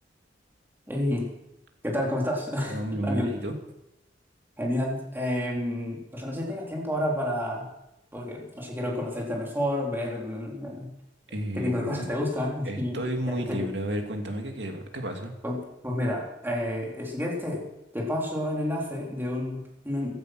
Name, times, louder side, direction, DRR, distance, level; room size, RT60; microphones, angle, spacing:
voice 1, 0.9-1.3 1.8-3.3 4.6-7.7 8.1-10.9 11.5-13.0 13.3-13.7 15.4-17.6 17.9-20.2, left 1 dB, 10° right, -2 dB, 4.0 m, -30 dB
voice 2, 2.6-3.5 11.3-12.1 12.7-15.3, right 1 dB, 70° right, 3 dB, 2.7 m, -32 dB
16.0 x 12.0 x 6.3 m, 0.86 s
head